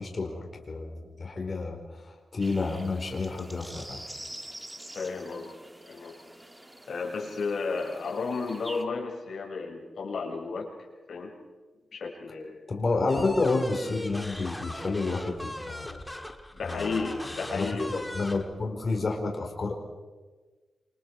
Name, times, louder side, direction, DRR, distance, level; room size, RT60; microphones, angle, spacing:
voice 1, 0.0-4.1 12.7-16.0 16.6-17.8 18.1-19.7, left 3 dB, 40° left, 1 dB, 4.7 m, -30 dB
sound 1, 2.4-8.8, right 1 dB, 10° right, 1.6 m, -46 dB
voice 2, 4.9-5.5 5.9-6.2 6.9-10.7 11.1-11.3 11.9-12.6 16.5-18.1, left 4 dB, 70° left, 0 dB, 6.5 m, -33 dB
sound 2, 13.1-18.4, left 1 dB, 10° left, 1.8 m, -39 dB
28.0 x 27.0 x 4.8 m, 1.3 s
wide cardioid pair, 135°, 0 cm